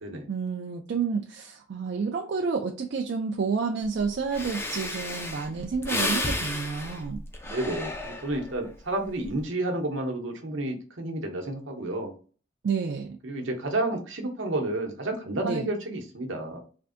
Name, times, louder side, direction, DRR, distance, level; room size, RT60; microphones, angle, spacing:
voice 1, 0.3-7.2 12.6-13.2 15.4-15.6, right 5 dB, 55° right, 0.3 m, -30 dB
Breathing, 4.0-4.1 4.3-8.6 9.0-9.4, left 2 dB, 10° left, 0.4 m, -32 dB
voice 2, 7.4-12.1 13.2-16.6, right 2 dB, 75° right, 0.8 m, -31 dB
3.3 x 2.5 x 2.5 m
head